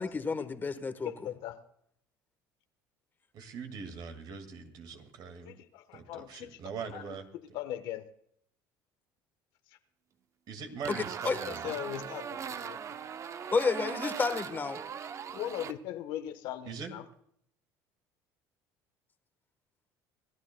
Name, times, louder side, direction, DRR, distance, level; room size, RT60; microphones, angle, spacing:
voice 1, 0.0-1.1 11.2-11.4 13.5-14.8, left 4 dB, 25° left, 10 dB, 1.2 m, -30 dB
voice 2, 1.0-1.6 5.4-6.6 6.9-7.2 7.5-8.1 11.4-12.8 15.3-17.0, left 12 dB, 75° left, 9 dB, 1.1 m, -39 dB
voice 3, 3.3-5.5 5.9-7.6 10.5-11.7 16.7-16.9, right 6 dB, 60° right, 7 dB, 2.0 m, -42 dB
sound 1, 10.8-15.7, right 7 dB, 40° right, 0.7 m, -39 dB
26.5 x 13.0 x 2.2 m, 0.69 s
cardioid pair, 110°, 8 cm